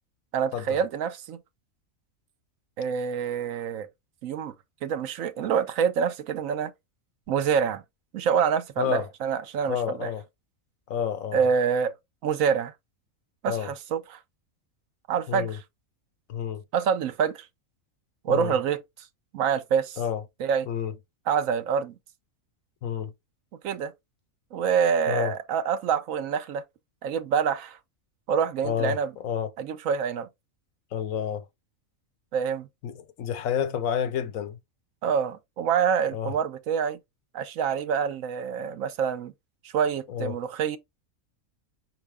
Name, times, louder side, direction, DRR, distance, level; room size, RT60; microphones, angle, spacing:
voice 1, 0.3-1.4 2.8-3.9 4.2-4.5 4.8-6.7 7.3-7.8 8.1-10.1 11.3-11.9 12.2-12.7 13.4-14.2 15.1-15.5 16.7-17.5 18.2-18.8 19.3-20.0 20.4-20.7 21.3-21.9 23.6-23.9 24.5-26.6 27.0-27.8 28.3-29.1 29.6-30.3 32.3-32.7 35.0-37.0 37.3-39.3 39.7-40.8, right 7 dB, 75° right, 1.1 m, -26 dB
voice 2, 8.8-9.1 9.7-10.2 10.9-11.4 13.5-13.7 15.3-15.6 16.3-16.6 18.3-18.6 20.0-20.2 20.7-21.0 22.8-23.1 25.1-25.4 28.6-29.5 30.9-31.4 32.8-34.6 36.1-36.3 40.1-40.4, left 8 dB, 80° left, 1.1 m, -29 dB
5.4 x 2.7 x 3.4 m
omnidirectional pair, 1.4 m